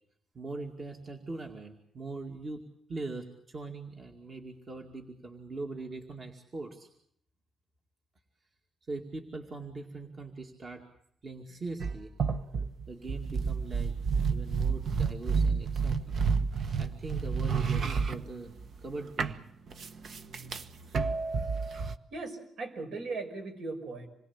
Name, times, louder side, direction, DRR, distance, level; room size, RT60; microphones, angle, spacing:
voice 1, 0.3-2.6 2.9-6.9 8.9-10.8 11.2-12.1 12.9-13.9 14.3-16.2 16.8-18.5 18.8-19.3, right 3 dB, 30° right, 2 dB, 2.3 m, -41 dB
sound 1, 11.8-18.9 19.2-22.0, right 5 dB, 45° right, 1.2 m, -30 dB
voice 2, 22.1-24.1, right 3 dB, 60° right, 6 dB, 5.7 m, -38 dB
27.5 x 21.5 x 7.3 m, 0.71 s
cardioid pair, 165°, 0 cm